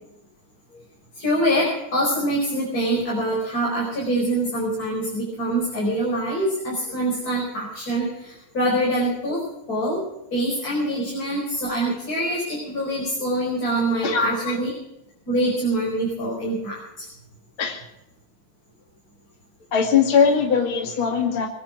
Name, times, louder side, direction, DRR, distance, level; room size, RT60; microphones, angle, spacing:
voice 1, 1.1-9.4 9.7-10.0 10.3-14.7 15.3-17.1, right 1 dB, 25° left, -3 dB, 5.2 m, -24 dB
voice 2, 14.0-14.6 17.6-17.9 19.7-21.5, left 6 dB, 40° left, 1 dB, 2.6 m, -21 dB
22.0 x 10.5 x 6.1 m, 0.86 s
omnidirectional pair, 3.8 m